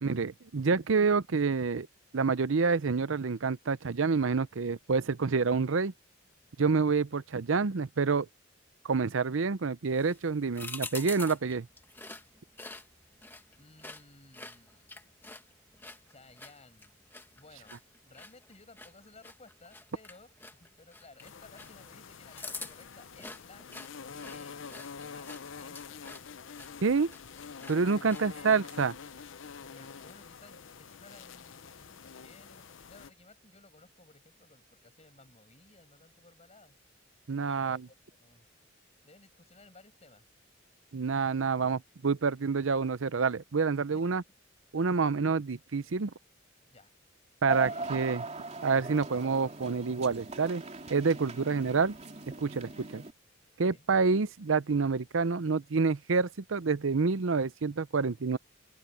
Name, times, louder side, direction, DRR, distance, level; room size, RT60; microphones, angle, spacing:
voice 1, 0.0-1.9 2.1-5.9 6.6-8.3 8.8-11.7 26.8-27.1 27.7-28.9 37.3-37.8 40.9-44.2 44.7-46.1 47.4-48.2 48.6-50.6 50.9-51.9 52.4-53.0 53.6-58.4, right 4 dB, 75° right, 0.6 m, -28 dB
sound 1, 9.8-28.4, left 3 dB, 10° left, 2.0 m, -48 dB
voice 2, 13.5-15.0 16.1-16.9 17.3-23.7 24.0-25.3 25.6-26.2 28.0-28.6 29.7-36.8 37.5-38.5 39.0-40.2 43.9-44.2 44.8-45.1 46.7-46.9 47.6-48.1 51.3-51.5 53.6-53.9, left 2 dB, 35° left, 7.2 m, -57 dB
sound 2, 21.2-33.1, left 6 dB, 70° left, 0.6 m, -46 dB
sound 3, 47.5-53.1, right 2 dB, 35° right, 3.1 m, -40 dB
open air
head